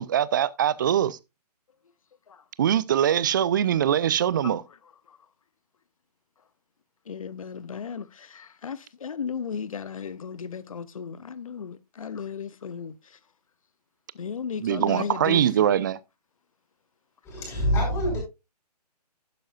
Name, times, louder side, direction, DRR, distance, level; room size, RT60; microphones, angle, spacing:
voice 1, 0.0-1.2 2.6-4.6 14.6-16.0, right 10 dB, 30° right, 0.5 m, -22 dB
voice 2, 7.1-13.2 14.1-15.7, left 6 dB, 55° left, 0.8 m, -35 dB
voice 3, 17.2-18.2, equal, 10° left, 6.2 m, -25 dB
12.0 x 10.0 x 2.4 m
figure-of-eight pair, 140°, 21 cm